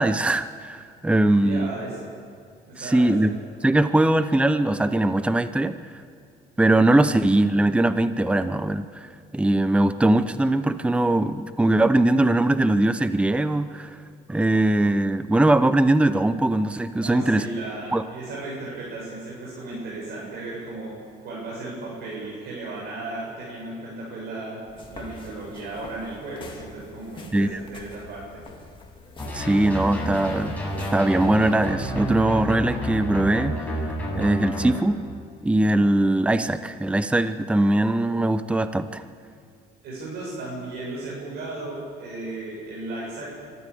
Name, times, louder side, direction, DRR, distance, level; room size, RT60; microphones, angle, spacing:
voice 1, 0.0-1.7 2.8-3.3 3.6-5.8 6.6-14.0 14.3-17.5 17.9-18.0 27.3-27.6 29.3-30.6 30.9-33.8 34.2-35.0 35.4-39.0, right 1 dB, 5° right, 12 dB, 0.8 m, -21 dB
voice 2, 1.4-2.0 2.7-3.3 17.0-20.9 21.2-24.6 24.9-28.4 39.8-43.3, right 2 dB, 75° right, -5 dB, 7.5 m, -35 dB
sound 1, 24.7-31.7, left 3 dB, 30° left, 2.4 m, -45 dB
sound 2, 29.2-34.8, equal, 10° left, 7.4 m, -30 dB
24.5 x 13.5 x 8.6 m, 2.2 s
cardioid pair, 110°, 17 cm